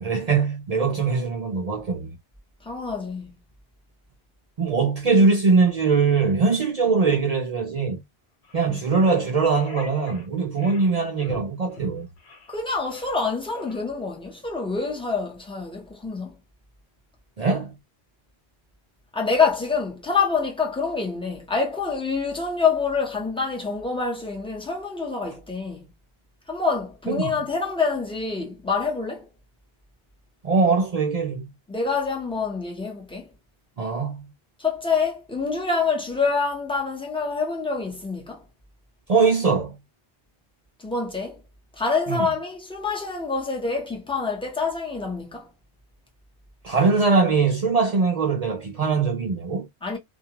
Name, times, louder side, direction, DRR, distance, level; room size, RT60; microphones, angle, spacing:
voice 1, 0.0-2.1 4.6-8.0 8.5-12.1 17.4-17.8 27.1-27.4 30.4-31.5 33.8-34.3 39.1-39.8 42.1-42.3 46.6-49.7, right 4 dB, 50° right, 0.5 m, -22 dB
voice 2, 2.6-3.3 8.7-8.8 12.5-16.4 19.1-25.9 26.5-29.3 31.7-33.3 34.6-38.5 40.8-41.4 41.7-45.5 49.8-50.0, left 4 dB, 5° left, 0.6 m, -26 dB
sound 1, 6.8-7.0 7.6-7.8 8.4-8.6 9.0-10.3 10.6-10.9 11.2-11.5 11.7-11.9 12.2-12.6 12.8-13.2 13.5-13.8, left 1 dB, 85° left, 1.2 m, -41 dB
2.3 x 2.2 x 2.8 m
omnidirectional pair, 1.1 m